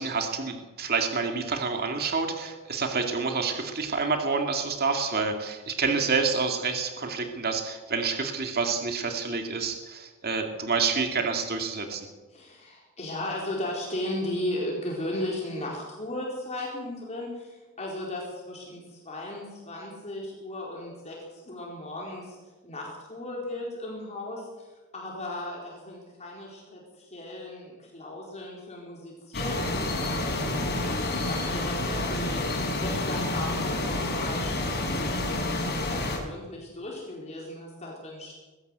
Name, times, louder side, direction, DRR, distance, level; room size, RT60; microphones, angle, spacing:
voice 1, 0.0-12.1, right 4 dB, 45° right, 4 dB, 2.3 m, -28 dB
voice 2, 12.3-22.4 22.6-38.4, left 1 dB, 30° left, -3 dB, 4.4 m, -36 dB
sound 1, 29.3-36.2, left 2 dB, 50° left, 5.8 m, -29 dB
21.0 x 16.0 x 8.1 m, 1.2 s
head